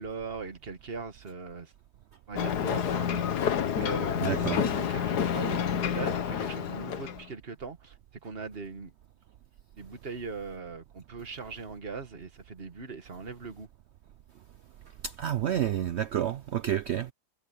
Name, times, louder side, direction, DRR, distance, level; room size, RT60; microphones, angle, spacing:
voice 1, 0.0-1.7 2.3-3.5 3.8-8.0 8.2-8.9 9.8-13.7, right 4 dB, 40° right, 1.8 m, -40 dB
Ocean, 2.4-7.3, left 8 dB, 80° left, 1.7 m, -29 dB
voice 2, 4.2-4.6 15.2-17.1, right 11 dB, 70° right, 0.6 m, -29 dB
omnidirectional pair, 1.7 m